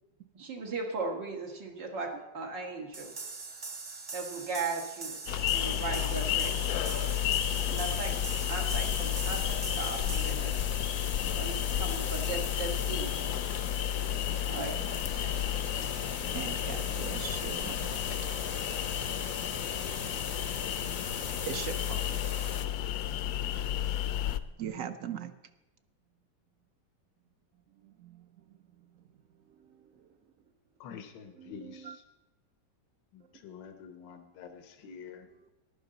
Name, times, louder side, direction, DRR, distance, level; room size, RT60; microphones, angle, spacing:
voice 1, 0.3-3.1 4.1-5.2 5.5-6.9 7.7-8.2 8.5-9.4 9.8-10.6 11.2-13.3 14.3-15.9 18.2-18.3, right 3 dB, 85° right, 2.5 m, -38 dB
sound 1, 2.9-10.3, right 4 dB, 50° right, 0.4 m, -42 dB
sound 2, 5.3-24.4, left 11 dB, 70° left, 1.0 m, -32 dB
sound 3, 6.1-22.6, left 5 dB, 50° left, 0.6 m, -39 dB
voice 2, 16.2-18.1 21.0-22.1 24.6-25.4 27.7-30.2 31.4-32.0 33.2-33.4 34.9-35.5, right 8 dB, 65° right, 0.9 m, -43 dB
voice 3, 30.8-32.0 33.1-35.3, left 7 dB, 85° left, 1.5 m, -47 dB
14.5 x 11.5 x 4.0 m
omnidirectional pair, 1.9 m